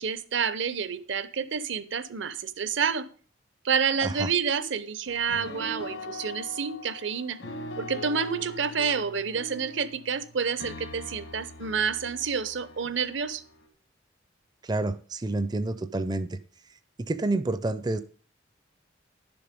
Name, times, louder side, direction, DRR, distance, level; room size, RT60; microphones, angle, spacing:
voice 1, 0.0-3.1 3.6-7.4 7.8-13.4, right 6 dB, 70° right, 0.7 m, -29 dB
sound 1, 5.1-13.7, left 1 dB, 80° left, 1.7 m, -42 dB
voice 2, 14.6-16.4 17.0-18.0, right 2 dB, 20° right, 0.4 m, -29 dB
11.0 x 6.9 x 5.3 m
head